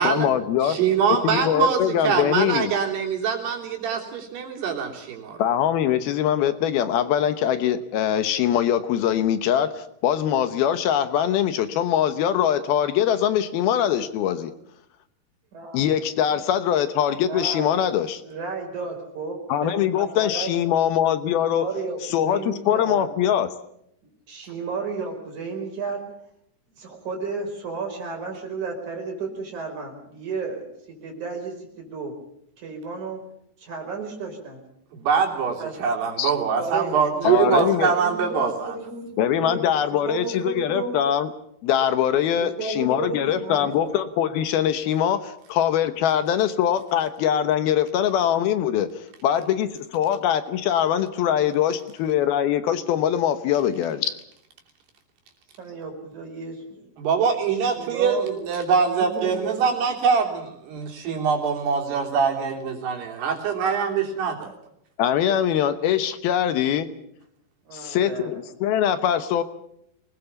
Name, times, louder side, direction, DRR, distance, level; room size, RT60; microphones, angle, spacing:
voice 1, 0.0-0.8 1.1-2.7 5.4-14.5 15.7-18.2 19.5-21.7 22.1-23.5 36.2-36.3 37.2-37.9 39.2-41.3 41.6-48.9 49.2-54.1 65.0-66.9 67.7-69.4, left 10 dB, 75° left, 11 dB, 2.8 m, -22 dB
voice 2, 0.6-5.4 34.9-38.8 57.0-64.5, right 6 dB, 80° right, 1 dB, 5.3 m, -23 dB
voice 3, 15.5-16.0 17.2-17.7 18.2-20.5 21.4-23.1 24.3-26.1 26.8-30.7 31.0-32.1 32.6-33.2 33.6-34.6 35.6-35.8 36.6-39.6 40.0-40.9 42.4-43.9 55.6-56.9 57.5-58.2 58.9-59.7 67.7-68.4 69.1-69.2, right 4 dB, 50° right, 2 dB, 6.2 m, -33 dB
24.5 x 20.0 x 7.1 m, 0.75 s
omnidirectional pair, 4.7 m